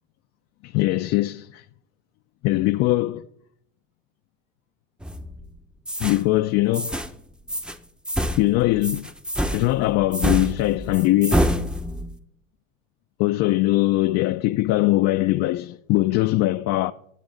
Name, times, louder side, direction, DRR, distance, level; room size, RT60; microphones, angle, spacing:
voice 1, 0.6-1.7 2.4-3.3 6.0-7.0 8.4-9.1 9.5-11.5 13.2-16.9, left 17 dB, 45° left, 0.4 m, -21 dB
sound 1, 5.0-5.4 5.9-6.2 6.7-7.1 7.5-7.8 8.0-12.2, equal, ahead, 0.6 m, -26 dB
16.5 x 7.2 x 3.9 m
hypercardioid pair, 85°, 38 cm